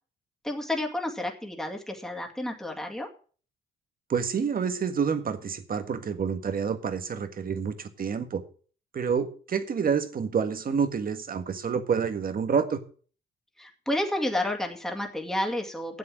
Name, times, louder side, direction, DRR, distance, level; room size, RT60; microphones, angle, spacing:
voice 1, 0.4-3.1 13.6-16.0, left 1 dB, ahead, 2.4 m, -30 dB
voice 2, 4.1-8.4 8.9-12.8, right 6 dB, 45° right, 1.6 m, -28 dB
9.6 x 7.8 x 7.5 m
cardioid pair, 90°, 20 cm